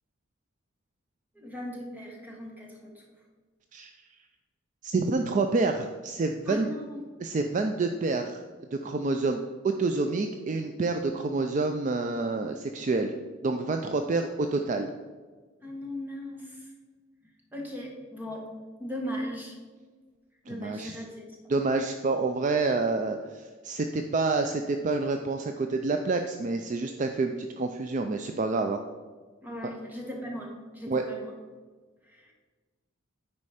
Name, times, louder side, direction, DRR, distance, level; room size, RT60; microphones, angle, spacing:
voice 1, 1.3-3.0 6.4-7.0 15.6-16.7 17.5-18.4 18.8-19.5 20.5-21.2 29.4-31.3 32.0-32.3, equal, 10° right, -1 dB, 1.3 m, -38 dB
voice 2, 4.8-6.7 7.2-8.4 8.7-9.4 9.8-13.1 13.4-14.9 20.5-21.0 21.5-28.8 29.6-29.7 30.9-31.0, right 3 dB, 35° right, 5 dB, 0.3 m, -28 dB
9.5 x 4.3 x 4.9 m, 1.4 s
head